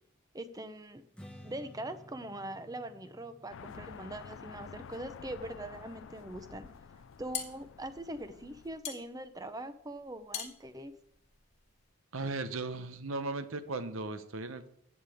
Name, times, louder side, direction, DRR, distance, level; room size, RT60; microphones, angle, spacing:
voice 1, 0.3-1.0 1.4-6.7 7.2-10.9, right 1 dB, 15° right, 11 dB, 0.7 m, -42 dB
Strum, 1.1-7.4, left 1 dB, 5° left, 1.2 m, -56 dB
sound 1, 3.5-8.8, left 6 dB, 60° left, 0.4 m, -50 dB
sound 2, 7.0-11.9, left 8 dB, 30° left, 1.5 m, -43 dB
voice 2, 12.1-14.7, right 3 dB, 70° right, 11 dB, 0.8 m, -37 dB
15.0 x 8.5 x 3.6 m, 0.70 s
head